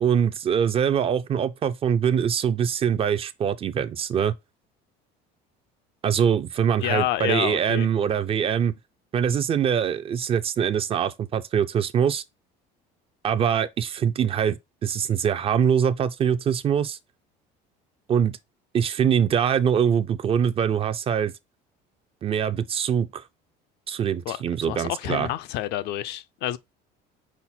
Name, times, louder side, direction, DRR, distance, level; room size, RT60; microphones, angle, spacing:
voice 1, 0.0-4.3 6.0-8.7 9.1-12.2 13.2-14.6 14.8-17.0 18.1-18.4 18.7-21.3 22.2-23.2 23.9-25.3, right 8 dB, 30° right, 0.3 m, -23 dB
voice 2, 6.8-7.9 24.3-24.4 24.7-26.6, left 14 dB, 65° left, 0.4 m, -28 dB
5.7 x 2.1 x 4.2 m
cardioid pair, 120°, 19 cm